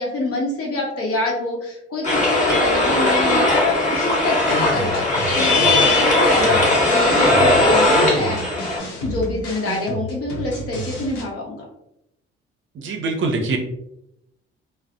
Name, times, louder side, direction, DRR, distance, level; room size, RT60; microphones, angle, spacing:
voice 1, 0.0-8.4 9.0-11.6, left 2 dB, 45° left, -2 dB, 0.8 m, -26 dB
sound 1, 2.0-8.8, left 2 dB, 20° left, 1.0 m, -18 dB
sound 2, 4.5-11.2, equal, 75° left, 0.7 m, -31 dB
voice 2, 12.7-13.6, right 3 dB, 40° right, 4 dB, 0.6 m, -23 dB
2.3 x 2.0 x 2.6 m, 0.81 s
hypercardioid pair, 50°, 33 cm